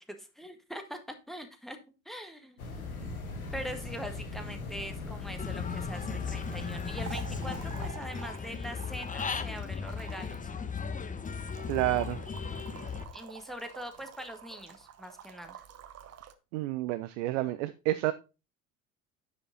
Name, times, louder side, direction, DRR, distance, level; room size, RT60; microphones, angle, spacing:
voice 1, 0.1-1.8 2.0-2.6 3.5-10.7 13.1-15.6, equal, ahead, 1.6 m, -42 dB
sound 1, 2.6-7.9, left 3 dB, 80° left, 1.6 m, -39 dB
Human voice / Bird, 5.4-13.0, left 6 dB, 20° left, 1.1 m, -37 dB
sound 2, 6.0-16.3, right 9 dB, 35° right, 1.0 m, -49 dB
voice 2, 11.7-12.2 16.5-18.1, right 16 dB, 60° right, 0.7 m, -29 dB
10.0 x 5.3 x 4.0 m
figure-of-eight pair, 65°, 42 cm